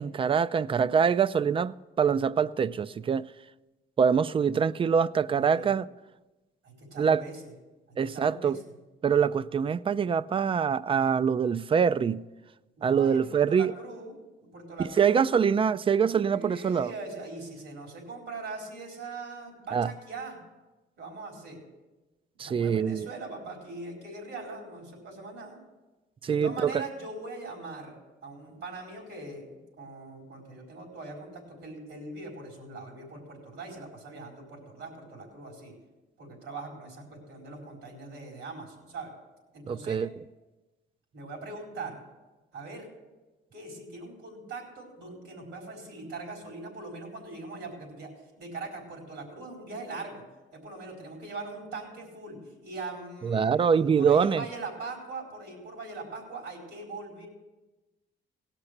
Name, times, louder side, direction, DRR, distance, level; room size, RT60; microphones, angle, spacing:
voice 1, 0.0-3.3 4.0-5.9 7.0-7.2 8.0-8.6 9.0-12.2 12.8-13.7 15.0-16.9 19.7-19.9 22.4-23.1 26.2-26.8 39.7-40.1 53.2-54.4, right 7 dB, 25° right, 0.3 m, -24 dB
voice 2, 5.4-5.7 6.6-7.5 8.1-8.6 12.8-14.1 14.4-15.3 16.3-20.4 21.0-21.6 22.3-25.6 26.3-27.9 28.2-35.7 36.2-39.1 39.5-40.0 41.1-42.0 42.5-42.9 43.5-48.1 48.4-50.2 50.5-52.4 52.6-57.3, right 3 dB, 80° right, 4.3 m, -41 dB
17.5 x 6.0 x 6.6 m
cardioid pair, 90°, 20 cm